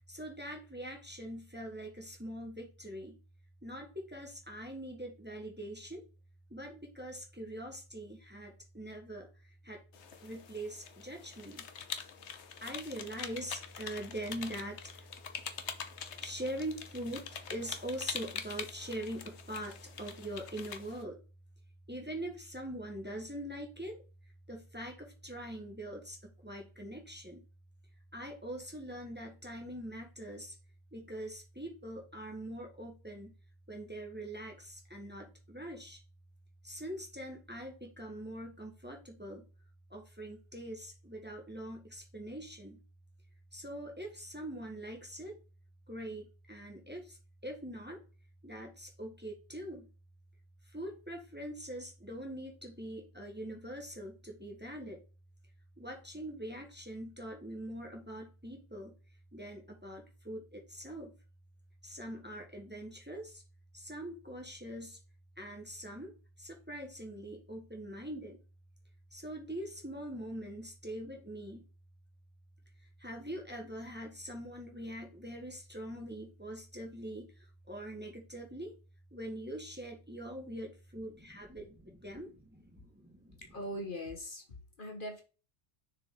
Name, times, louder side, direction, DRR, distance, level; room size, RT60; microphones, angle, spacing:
voice 1, 0.1-3.2 3.6-6.0 6.5-9.3 9.6-9.8 10.2-11.7 12.6-15.1 16.2-21.2 21.9-24.0 24.5-27.4 28.1-30.5 30.9-33.3 33.7-36.0 36.6-39.4 39.9-42.8 43.5-45.4 45.9-48.0 48.4-49.9 50.7-55.0 55.8-58.9 59.3-61.1 61.8-63.4 63.7-65.0 65.4-68.4 69.1-71.7 73.0-78.7 79.1-83.4, right 1 dB, 10° right, 1 dB, 1.6 m, -43 dB
sound 1, 9.9-21.0, left 7 dB, 90° left, 1.2 m, -44 dB
voice 2, 83.4-85.2, equal, 50° left, 4 dB, 1.4 m, -41 dB
6.7 x 4.7 x 3.9 m, 0.33 s
omnidirectional pair, 1.1 m